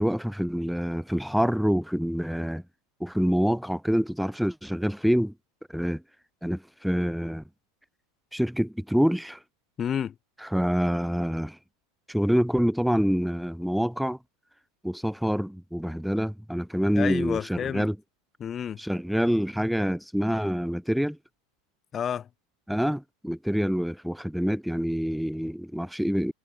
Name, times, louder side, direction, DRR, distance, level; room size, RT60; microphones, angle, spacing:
voice 1, 0.0-2.6 3.0-5.3 5.7-6.0 6.4-7.4 8.3-9.4 10.5-11.6 12.1-14.2 14.8-18.0 18.8-21.2 22.7-26.3, equal, ahead, 2.3 m, -26 dB
voice 2, 9.8-10.1 17.0-17.9 18.4-18.8 21.9-22.3, left 8 dB, 30° left, 2.3 m, -30 dB
hypercardioid pair, 95°, 0 cm